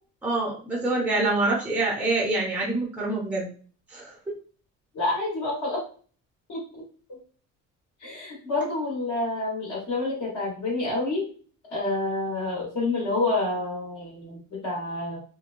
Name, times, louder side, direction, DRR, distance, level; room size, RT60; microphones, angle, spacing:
voice 1, 0.2-3.5 3.9-4.1, right 2 dB, 5° right, -3 dB, 0.6 m, -26 dB
voice 2, 4.9-5.8 6.5-6.8 7.1-7.2 8.0-11.2 11.7-15.2, left 2 dB, 55° left, -5 dB, 1.4 m, -28 dB
3.0 x 2.1 x 2.5 m, 0.41 s
cardioid pair, 150°, 33 cm